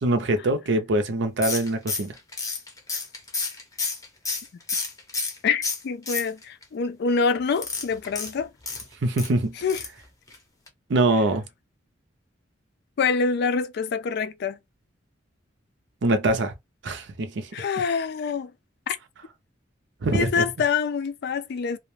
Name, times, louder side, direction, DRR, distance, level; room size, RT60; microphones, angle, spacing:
voice 1, 0.0-2.2 9.0-9.6 10.9-11.4 16.0-16.5 16.8-17.5 20.0-20.4, right 2 dB, 65° right, 0.6 m, -23 dB
sound 1, 1.4-5.4 5.6-6.6 7.6-9.3 9.7-10.0 10.3-10.4 10.7-10.8, left 4 dB, 20° left, 0.6 m, -30 dB
voice 2, 5.4-8.5 9.6-9.8 13.0-14.6 17.5-18.5 18.9-19.0 20.1-21.8, left 5 dB, 60° left, 0.3 m, -25 dB
2.4 x 2.1 x 3.0 m
head